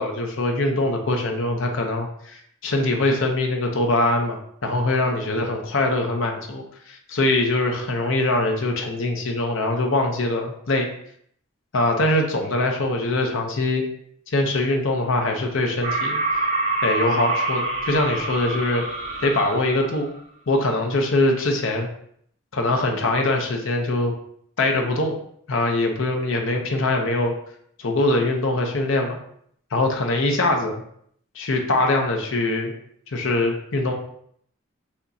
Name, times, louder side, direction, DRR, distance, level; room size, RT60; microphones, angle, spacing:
voice 1, 0.0-10.9 11.7-13.8 14.3-16.2 16.8-18.8 19.2-20.1 20.5-21.9 22.5-24.1 24.6-25.2 25.5-27.3 27.8-29.2 29.7-30.8 31.3-32.7 33.1-33.9, left 2 dB, 75° left, 2 dB, 0.7 m, -23 dB
sound 1, 15.8-20.0, right 2 dB, 80° right, 1.7 m, -26 dB
6.4 x 2.9 x 2.7 m, 0.66 s
head